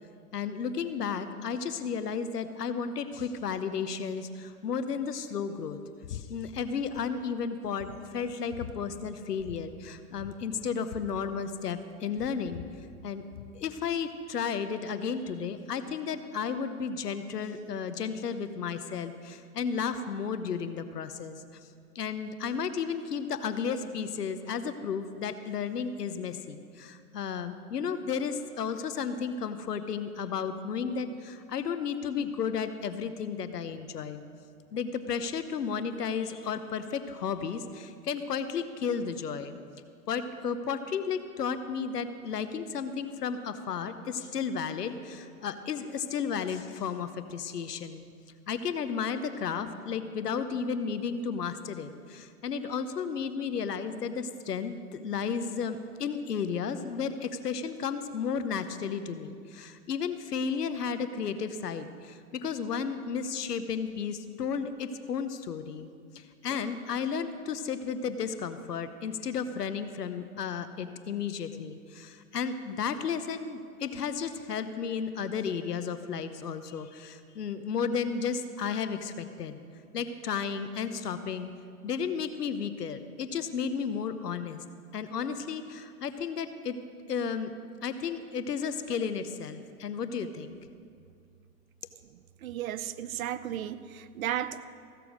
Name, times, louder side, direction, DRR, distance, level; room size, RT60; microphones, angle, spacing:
voice 1, 0.3-5.8 6.1-12.6 13.0-13.2 13.5-21.4 21.9-34.2 34.7-39.6 40.1-48.0 48.5-79.6 79.9-81.5 81.8-84.6 84.9-86.7 87.1-87.5 87.8-90.6, left 6 dB, 85° left, 10 dB, 1.0 m, -33 dB
sound 1, 6.0-6.3 6.5-7.1 7.4-7.5 7.8-8.8 9.4-9.6 9.8-9.9 10.1-11.8 12.1-13.6, left 10 dB, 55° left, 1.1 m, -44 dB
voice 2, 92.4-94.6, right 11 dB, 65° right, 14 dB, 0.7 m, -34 dB
15.5 x 6.9 x 6.3 m, 2.3 s
hypercardioid pair, 125°, 46 cm